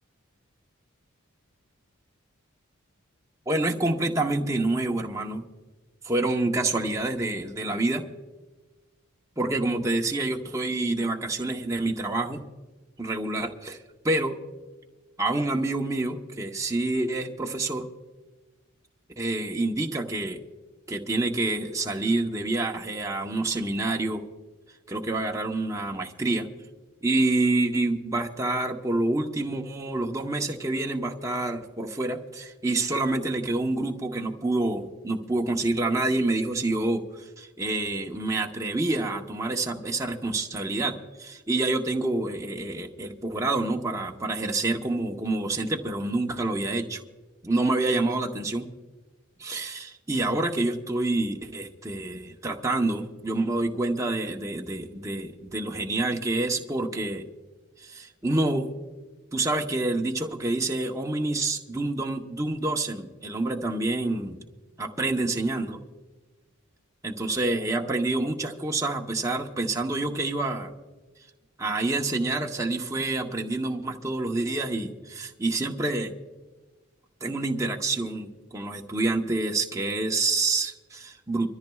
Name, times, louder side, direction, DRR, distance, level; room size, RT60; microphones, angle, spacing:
voice 1, 3.5-5.4 6.0-8.0 9.4-12.4 13.0-13.8 14.0-14.4 15.2-17.9 19.2-20.4 20.9-24.2 24.9-26.5 27.0-47.0 47.4-48.7 49.4-57.2 57.8-58.7 59.3-64.4 64.8-65.8 67.0-70.7 71.6-76.1 77.2-81.5, right 2 dB, 15° right, 1 dB, 0.8 m, -27 dB
25.0 x 14.0 x 2.3 m, 1.2 s
head